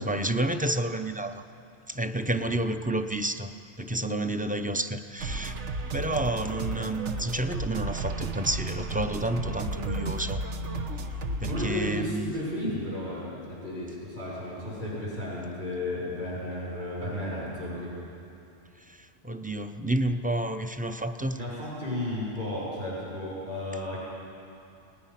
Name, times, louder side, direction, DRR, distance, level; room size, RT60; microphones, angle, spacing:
voice 1, 0.0-1.4 1.9-3.5 3.8-5.6 5.9-10.4 11.4-12.3 18.9-21.4, right 1 dB, 10° right, 8 dB, 0.5 m, -30 dB
voice 2, 2.2-2.6 9.4-9.7 11.5-17.9 21.3-24.0, left 1 dB, 60° right, -7 dB, 7.1 m, -34 dB
sound 1, 5.2-11.7, right 2 dB, 85° right, 1.4 m, -33 dB
29.5 x 19.0 x 5.8 m, 2.8 s
omnidirectional pair, 1.2 m